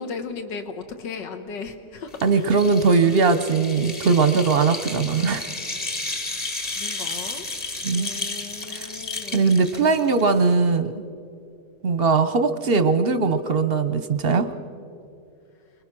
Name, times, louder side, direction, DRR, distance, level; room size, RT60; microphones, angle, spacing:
voice 1, 0.0-2.4 2.8-3.0 6.7-7.5 7.9-9.5, left 5 dB, 85° left, 7 dB, 2.0 m, -36 dB
sound 1, 2.1-10.5, left 2 dB, 25° left, 1.6 m, -33 dB
voice 2, 2.2-5.5 7.8-8.1 8.7-8.9 9.3-11.0 11.8-14.5, right 4 dB, 45° right, 10 dB, 0.8 m, -20 dB
28.5 x 21.5 x 6.1 m, 2.5 s
omnidirectional pair, 1.9 m